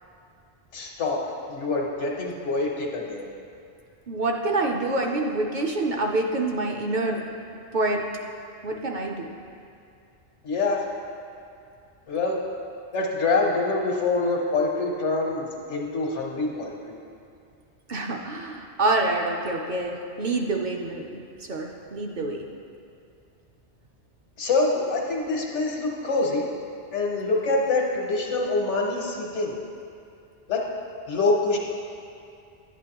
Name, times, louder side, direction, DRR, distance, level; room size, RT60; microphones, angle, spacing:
voice 1, 0.7-1.2 1.5-3.3 10.4-10.8 12.1-12.4 12.9-17.0 24.4-26.5 26.9-29.5 30.5-30.7 31.1-31.6, left 3 dB, 90° left, -1 dB, 1.5 m, -25 dB
voice 2, 4.1-7.3 7.7-8.1 8.6-9.3 17.9-22.5, right 2 dB, 50° right, 1 dB, 0.6 m, -27 dB
11.0 x 8.4 x 2.9 m, 2.5 s
omnidirectional pair, 1.2 m